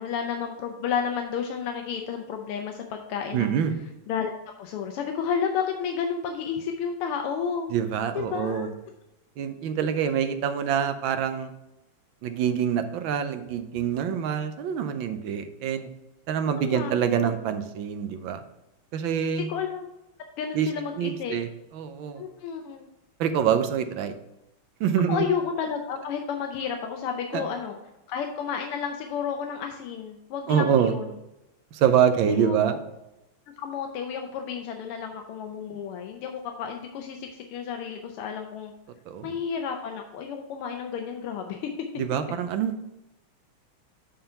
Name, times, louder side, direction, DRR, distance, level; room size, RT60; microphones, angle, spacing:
voice 1, 0.0-3.5 4.1-7.7 8.2-8.7 16.6-16.9 17.2-17.3 19.5-19.9 20.4-21.4 22.2-22.9 25.1-27.8 28.1-31.1 32.3-32.6 33.6-38.7 39.2-41.7, left 7 dB, 90° left, 4 dB, 1.7 m, -31 dB
voice 2, 3.3-3.8 7.7-8.7 9.4-11.5 12.2-15.9 16.3-18.4 18.9-19.5 20.5-20.7 21.0-22.2 23.2-24.1 24.8-25.3 27.3-27.4 30.5-30.9 31.7-32.8 39.1-39.3 42.0-42.7, right 8 dB, 70° right, 8 dB, 1.3 m, -25 dB
8.8 x 3.8 x 5.5 m, 0.92 s
omnidirectional pair, 2.4 m